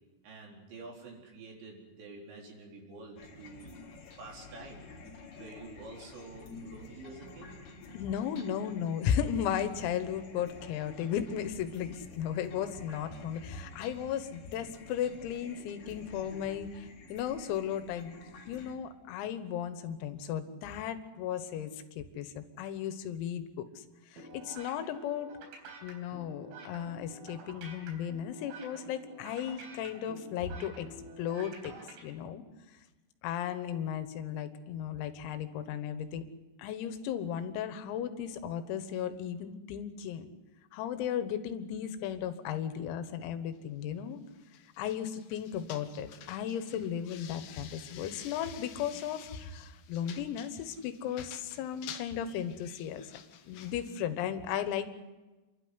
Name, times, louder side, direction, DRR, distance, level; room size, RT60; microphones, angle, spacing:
voice 1, 0.2-3.9 4.2-4.9 5.2-7.5, right 3 dB, 60° right, -1 dB, 6.2 m, -48 dB
sound 1, 3.2-18.7, left 3 dB, 55° left, 4.5 m, -50 dB
voice 2, 7.9-18.2 18.5-25.3 25.8-30.9 31.2-32.4 33.2-36.2 36.6-40.3 40.7-44.2 44.8-54.9, left 9 dB, 90° left, 10 dB, 4.0 m, -35 dB
sound 2, 24.2-32.0, right 2 dB, 90° right, 6.6 m, -48 dB
sound 3, 44.3-53.9, left 9 dB, 70° left, 2.6 m, -50 dB
28.5 x 12.5 x 9.6 m, 1.2 s
omnidirectional pair, 6.0 m